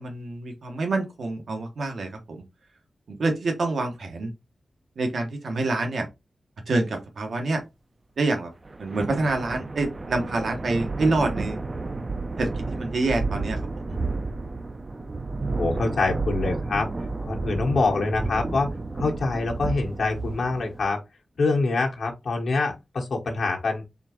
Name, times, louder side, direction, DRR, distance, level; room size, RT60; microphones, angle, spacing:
voice 1, 0.0-2.4 3.1-4.3 5.0-6.1 6.7-7.6 8.2-8.5 8.8-11.6 12.4-13.6 13.9-14.0, right 2 dB, 75° right, 1.2 m, -27 dB
sound 1, 8.7-20.9, right 3 dB, 30° right, 0.4 m, -31 dB
voice 2, 15.6-16.9 17.2-21.0 21.4-23.8, left 3 dB, 80° left, 1.1 m, -25 dB
4.3 x 3.4 x 2.9 m
wide cardioid pair, 155°, 0 cm